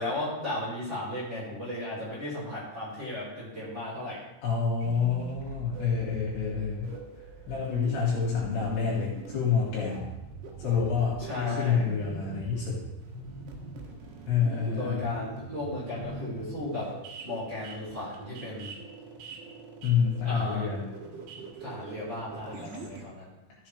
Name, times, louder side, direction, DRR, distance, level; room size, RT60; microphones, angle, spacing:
voice 1, 0.0-4.2 6.9-7.1 11.2-11.9 14.7-16.9 17.2-18.7 20.2-20.7 20.9-23.3, left 1 dB, 25° right, -9 dB, 3.8 m, -35 dB
voice 2, 4.4-6.9 7.5-10.1 10.6-12.8 14.3-15.1 19.8-20.8, left 6 dB, 60° left, -4 dB, 3.5 m, -28 dB
sound 1, 4.8-23.0, right 4 dB, 70° right, 3.3 m, -43 dB
14.0 x 7.0 x 3.3 m, 0.98 s
omnidirectional pair, 5.9 m